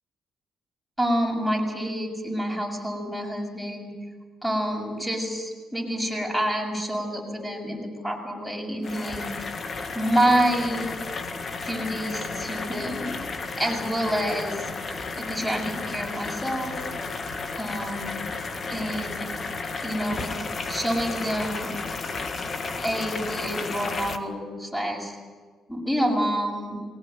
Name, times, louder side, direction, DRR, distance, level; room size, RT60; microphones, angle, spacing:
voice 1, 1.0-3.9 4.4-9.5 9.9-10.9 11.6-13.2 13.6-14.6 15.2-16.7 17.5-18.1 18.7-19.3 19.8-20.3 20.7-21.7 22.8-25.0 25.7-26.8, equal, 5° left, 1 dB, 7.2 m, -27 dB
sound 1, 8.8-24.2, left 4 dB, 45° left, 1.7 m, -33 dB
21.5 x 17.5 x 9.2 m, 1.4 s
cardioid pair, 90°, 0 cm